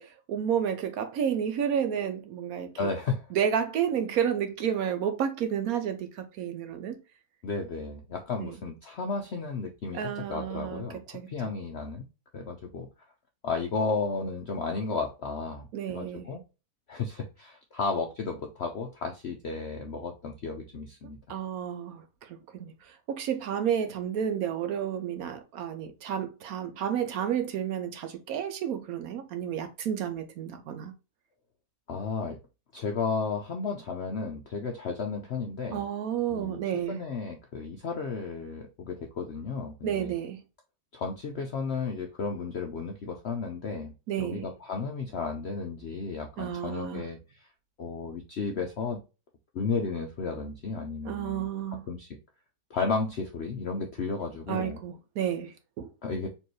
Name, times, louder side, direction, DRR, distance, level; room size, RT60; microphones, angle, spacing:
voice 1, 0.0-2.7 3.3-7.0 8.4-8.6 9.9-11.3 15.7-16.3 21.3-30.9 35.7-37.0 39.8-40.4 44.1-44.5 46.4-47.0 51.0-51.8 54.5-55.9, right 8 dB, 70° right, 0.9 m, -31 dB
voice 2, 2.8-3.3 7.4-12.0 12.3-12.9 13.4-16.4 16.9-21.2 31.9-32.4 32.7-35.8 36.3-36.6 36.9-40.1 40.9-47.5 47.8-49.0 49.5-52.1 52.7-54.8 56.0-56.3, left 4 dB, 70° left, 0.6 m, -33 dB
4.4 x 3.0 x 3.0 m
omnidirectional pair, 1.8 m